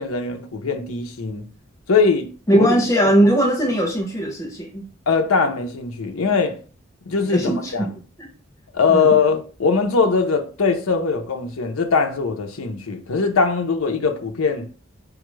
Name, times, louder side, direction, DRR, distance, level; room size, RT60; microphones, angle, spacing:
voice 1, 0.0-1.4 1.9-2.3 2.6-2.7 3.0-3.1 5.1-6.6 7.0-7.9 8.7-14.7, left 5 dB, 90° left, 0.7 m, -21 dB
voice 2, 2.5-4.8 7.2-7.9 8.2-8.3 8.9-9.1, right 1 dB, 15° left, 0.6 m, -19 dB
5.0 x 2.4 x 3.1 m
head